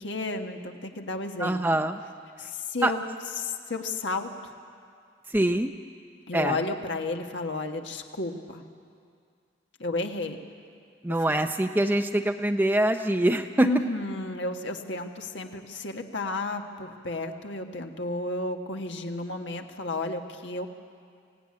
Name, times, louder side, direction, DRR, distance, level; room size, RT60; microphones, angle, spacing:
voice 1, 0.0-1.8 2.4-3.0 3.4-4.5 6.3-8.6 9.8-10.4 11.1-11.4 13.6-20.7, left 2 dB, 70° left, 4 dB, 1.4 m, -32 dB
voice 2, 1.4-2.0 2.8-2.9 5.3-5.8 6.3-6.6 11.0-13.7, right 1 dB, 10° right, 6 dB, 0.5 m, -24 dB
24.0 x 16.5 x 9.7 m, 2.3 s
head